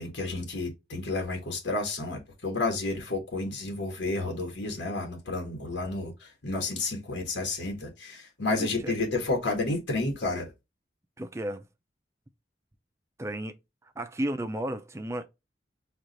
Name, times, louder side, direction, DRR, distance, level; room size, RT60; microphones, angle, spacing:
voice 1, 0.0-10.5, left 2 dB, 90° left, 1.3 m, -31 dB
voice 2, 8.6-9.0 11.2-11.6 13.2-13.5 14.0-15.3, right 1 dB, 15° right, 0.5 m, -33 dB
4.6 x 2.5 x 3.8 m
head